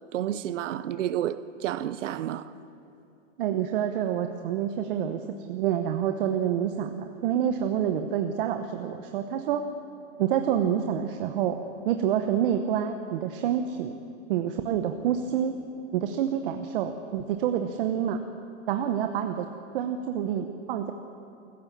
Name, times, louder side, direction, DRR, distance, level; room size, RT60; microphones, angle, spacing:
voice 1, 0.1-2.5, right 11 dB, 75° right, 0.8 m, -30 dB
voice 2, 3.4-5.2 5.5-9.7 10.2-11.6 11.8-13.9 14.3-15.6 15.9-18.2 18.7-19.5 19.7-20.9, right 9 dB, 45° right, 1.0 m, -27 dB
25.0 x 15.0 x 7.4 m
supercardioid pair, 160°, 37 cm